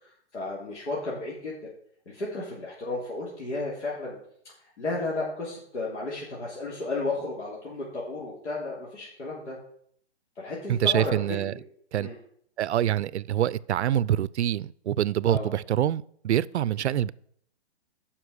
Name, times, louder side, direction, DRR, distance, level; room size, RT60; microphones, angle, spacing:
voice 1, 0.0-1.5 2.0-4.2 4.8-9.6 10.4-11.1 12.0-12.1 15.3-15.5, left 2 dB, 85° left, 3.3 m, -33 dB
voice 2, 10.7-11.5 11.9-12.1 12.6-17.1, right 11 dB, 75° right, 0.5 m, -25 dB
9.7 x 5.9 x 6.4 m
hypercardioid pair, 165°, 34 cm